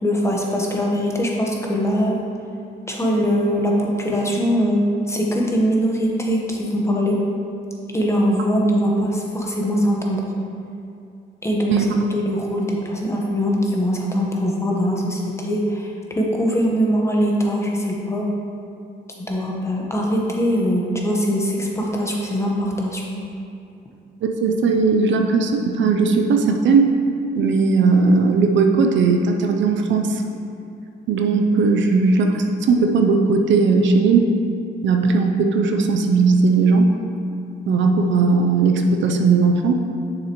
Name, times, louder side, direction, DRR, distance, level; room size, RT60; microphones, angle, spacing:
voice 1, 0.0-2.2 2.9-7.2 7.9-10.3 11.4-11.9 12.1-18.3 19.3-23.2, equal, 15° left, -2 dB, 1.2 m, -22 dB
voice 2, 24.2-26.9 27.4-30.2 31.1-34.2 34.8-36.9 37.7-39.8, right 4 dB, 70° right, 4 dB, 0.6 m, -17 dB
6.7 x 6.7 x 3.1 m, 2.5 s
cardioid pair, 90°, 20 cm